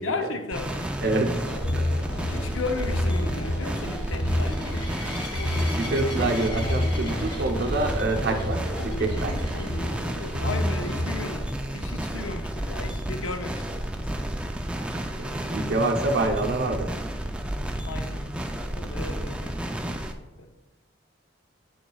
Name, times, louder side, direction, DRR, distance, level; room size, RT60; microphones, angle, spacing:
voice 1, 0.0-0.9 2.3-5.1 10.4-14.2 17.9-18.3 18.6-20.5, left 3 dB, 80° left, 0.7 m, -35 dB
sound 1, 0.5-20.1, right 1 dB, 5° right, 0.3 m, -32 dB
voice 2, 1.0-1.5 1.8-1.9 5.8-9.4 15.2-16.9, right 2 dB, 55° right, 0.7 m, -26 dB
sound 2, 1.2-11.1, left 1 dB, 60° left, 1.1 m, -30 dB
sound 3, 1.9-9.8 10.4-10.7 11.0-11.1 11.5-11.6 15.1-15.2, left 2 dB, 25° left, 1.0 m, -41 dB
8.1 x 7.0 x 2.3 m
head